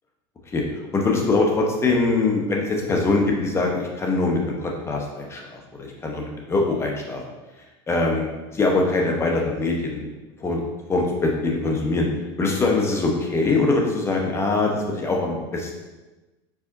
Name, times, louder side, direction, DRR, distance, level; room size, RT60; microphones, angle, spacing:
voice 1, 0.9-7.2 7.9-10.1 10.4-10.6 10.9-12.1 12.4-15.7, left 3 dB, 20° left, 0 dB, 0.9 m, -23 dB
4.9 x 4.1 x 2.6 m, 1.1 s
supercardioid pair, 115°, 13 cm